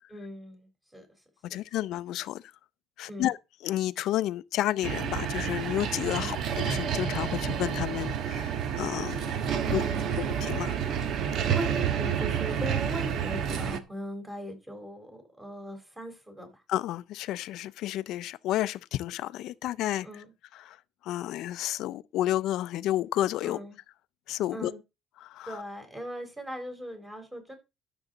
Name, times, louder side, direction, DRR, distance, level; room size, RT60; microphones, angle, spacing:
voice 1, 0.1-0.7 0.9-1.1 1.5-1.6 3.1-3.3 6.2-6.3 9.6-10.2 11.5-16.6 20.0-20.3 23.4-23.8 24.5-24.8 25.5-27.6, equal, 10° right, 4.0 m, -39 dB
voice 2, 1.4-2.4 3.0-3.4 3.6-9.3 9.7-9.8 10.2-10.8 16.7-20.2 20.5-20.8 21.0-23.6 24.3-24.7 25.2-25.6, left 14 dB, 75° left, 0.5 m, -31 dB
sound 1, 4.8-13.8, right 8 dB, 60° right, 1.2 m, -29 dB
12.5 x 6.9 x 3.9 m
cardioid pair, 110°, 0 cm